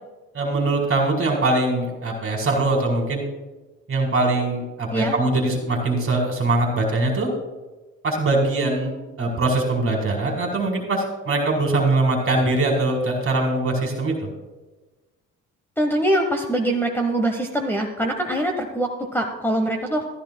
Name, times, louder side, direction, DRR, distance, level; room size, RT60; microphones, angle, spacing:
voice 1, 0.3-3.2 3.9-7.3 8.0-8.9 9.2-14.2, right 2 dB, 45° right, 1 dB, 2.0 m, -22 dB
voice 2, 15.8-20.1, right 1 dB, 5° left, 3 dB, 1.0 m, -23 dB
14.0 x 14.0 x 2.2 m, 1.2 s
cardioid pair, 90°, 30 cm